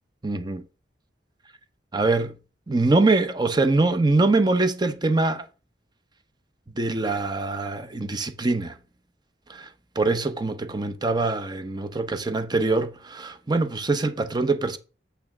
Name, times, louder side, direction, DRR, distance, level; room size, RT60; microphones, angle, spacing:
voice 1, 0.2-0.6 1.9-2.4 2.7-5.5 6.8-8.8 9.5-9.7 10.0-14.8, right 3 dB, 25° right, 0.7 m, -23 dB
8.5 x 3.4 x 5.9 m
head